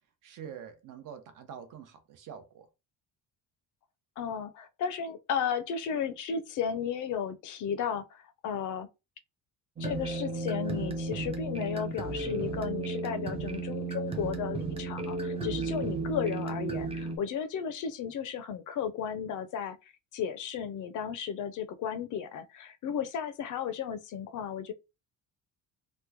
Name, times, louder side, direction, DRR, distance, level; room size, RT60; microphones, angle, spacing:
voice 1, 0.2-2.7, right 8 dB, 55° right, 0.8 m, -45 dB
voice 2, 4.2-8.9 9.8-24.7, left 7 dB, 55° left, 0.5 m, -34 dB
sound 1, 9.8-17.2, right 3 dB, 15° right, 0.4 m, -34 dB
3.0 x 2.2 x 3.4 m
cardioid pair, 165°, 38 cm